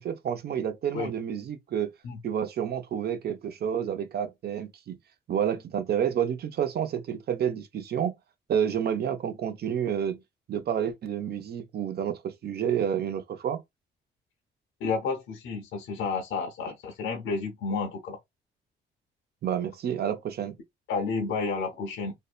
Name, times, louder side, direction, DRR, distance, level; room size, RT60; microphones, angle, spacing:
voice 1, 0.0-1.9 2.2-4.9 5.3-8.1 8.5-10.2 10.5-13.6 19.4-20.6, right 8 dB, 55° right, 0.6 m, -29 dB
voice 2, 14.8-18.2 20.9-22.1, left 4 dB, 80° left, 0.7 m, -31 dB
2.7 x 2.1 x 2.3 m
cardioid pair, 90°, 20 cm